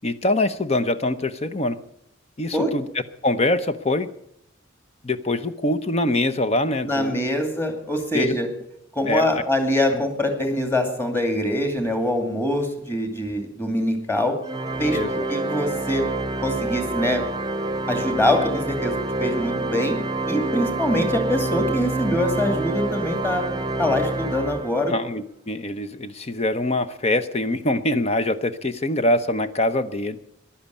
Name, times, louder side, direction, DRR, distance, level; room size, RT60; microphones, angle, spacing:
voice 1, 0.0-1.8 2.4-2.9 3.2-4.1 5.0-7.3 8.1-8.4 9.1-9.4 9.9-10.0 14.9-15.3 24.9-30.2, left 1 dB, 30° left, 12 dB, 0.8 m, -24 dB
voice 2, 6.8-8.5 9.0-14.3 14.8-15.0 15.3-16.1 16.4-17.2 17.9-20.0 20.3-23.4 23.8-24.9, left 1 dB, 10° left, 5 dB, 2.6 m, -24 dB
Organ, 14.4-25.1, right 2 dB, 20° right, 0.9 m, -27 dB
14.5 x 11.5 x 8.3 m, 0.74 s
head